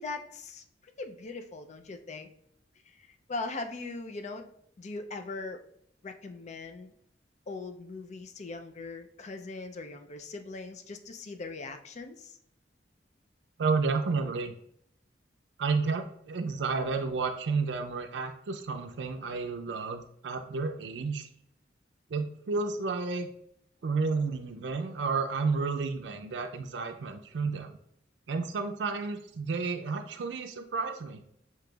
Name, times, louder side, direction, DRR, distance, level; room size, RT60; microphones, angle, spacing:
voice 1, 0.0-2.3 2.9-4.5 4.8-5.7 6.0-6.9 7.5-12.4, left 3 dB, 40° left, 6 dB, 0.4 m, -40 dB
voice 2, 13.6-14.5 15.6-21.3 22.1-23.3 23.8-27.8 28.3-31.2, right 4 dB, 75° right, 5 dB, 0.4 m, -31 dB
7.5 x 2.9 x 2.3 m, 0.70 s
head